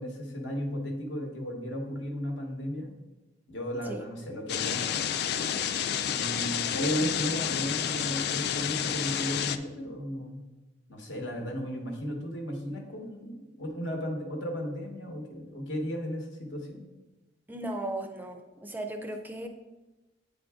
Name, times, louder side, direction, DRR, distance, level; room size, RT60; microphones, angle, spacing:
voice 1, 0.0-2.9 3.5-5.2 6.0-10.4 10.9-16.8, equal, 80° left, 2 dB, 1.1 m, -35 dB
sound 1, 4.5-9.6, left 9 dB, 60° left, 0.3 m, -30 dB
voice 2, 17.5-19.5, right 1 dB, 10° right, 5 dB, 0.4 m, -36 dB
8.3 x 3.9 x 3.5 m, 1.1 s
head